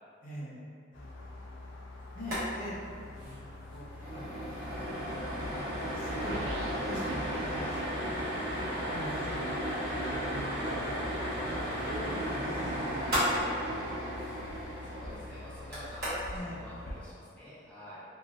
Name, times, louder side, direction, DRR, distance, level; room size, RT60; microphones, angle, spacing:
voice 1, 0.2-0.6 0.9-1.3 2.1-2.7 3.2-5.5 5.8-6.4 6.8-8.2 8.9-13.4 15.0-15.2 16.3-16.6, equal, 45° left, -7 dB, 0.7 m, -45 dB
sound 1, 0.9-17.0, left 2 dB, 90° left, 0.4 m, -46 dB
sound 2, 2.2-2.4 2.7-2.8 3.1-3.3 3.7-16.4, equal, 55° right, 1.1 m, -34 dB
sound 3, 6.2-14.5, right 2 dB, 90° right, 0.3 m, -43 dB
voice 2, 14.8-18.0, left 1 dB, 10° left, -11 dB, 0.5 m, -48 dB
3.1 x 2.4 x 2.4 m, 2.2 s
head